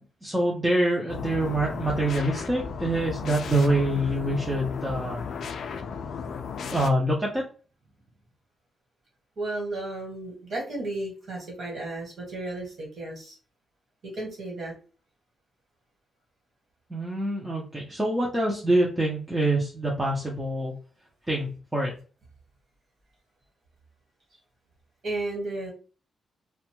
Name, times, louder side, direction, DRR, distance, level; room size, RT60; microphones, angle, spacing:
voice 1, 0.2-5.2 6.7-7.4 16.9-20.7 21.3-21.9, right 1 dB, 10° right, -3 dB, 0.5 m, -25 dB
sound 1, 1.1-6.9, left 6 dB, 60° left, 0.3 m, -35 dB
voice 2, 9.4-13.3 14.1-14.7 25.0-25.7, right 2 dB, 50° right, -1 dB, 1.3 m, -33 dB
2.6 x 2.2 x 2.9 m, 0.37 s
wide cardioid pair, 170°, 0 cm